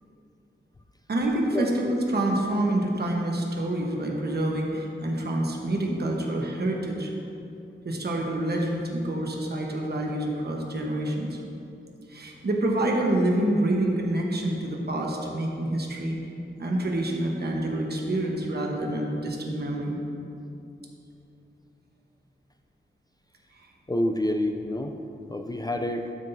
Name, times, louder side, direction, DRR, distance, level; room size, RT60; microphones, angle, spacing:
voice 1, 1.1-7.1 7.8-11.4 12.1-16.2 16.6-20.0, right 1 dB, 55° right, 0 dB, 1.2 m, -27 dB
voice 2, 23.9-24.9 25.3-26.1, left 1 dB, 20° left, 4 dB, 0.4 m, -27 dB
12.0 x 5.8 x 2.7 m, 2.7 s
wide cardioid pair, 80°, 20 cm